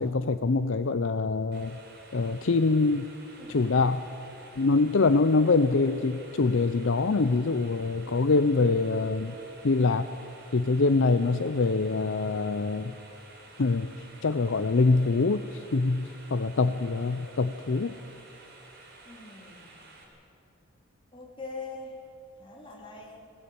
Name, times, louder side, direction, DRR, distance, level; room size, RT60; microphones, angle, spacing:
voice 1, 0.0-1.8 2.1-3.1 3.5-4.0 4.6-9.3 9.6-10.1 10.5-12.9 13.6-13.9 14.2-17.9, left 3 dB, 60° left, 11 dB, 0.6 m, -24 dB
sound 1, 1.5-20.0, right 2 dB, 50° right, 4.1 m, -52 dB
voice 2, 3.4-3.7 19.0-19.8 21.1-21.9 22.4-23.2, left 3 dB, 25° left, -2 dB, 3.5 m, -43 dB
20.0 x 18.5 x 8.7 m, 2.8 s
head